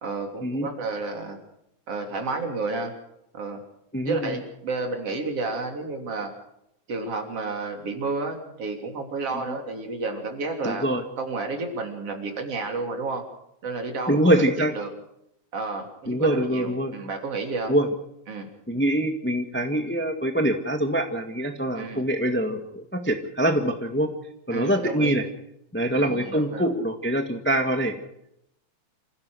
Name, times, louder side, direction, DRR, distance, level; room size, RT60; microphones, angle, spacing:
voice 1, 0.0-1.4 1.9-2.9 3.3-3.6 4.1-6.3 6.9-10.9 11.2-13.2 13.6-14.3 14.7-14.9 15.5-17.7 18.3-18.5 21.8-22.0 24.5-25.2 25.9-26.7, right 3 dB, 50° right, 3 dB, 4.1 m, -31 dB
voice 2, 3.9-4.4 9.3-9.6 10.6-11.0 14.1-14.7 16.1-16.9 17.7-17.9 18.7-24.1 24.5-25.2 25.7-28.1, right 1 dB, 5° left, 5 dB, 1.1 m, -24 dB
27.5 x 16.0 x 6.4 m, 0.80 s
omnidirectional pair, 3.4 m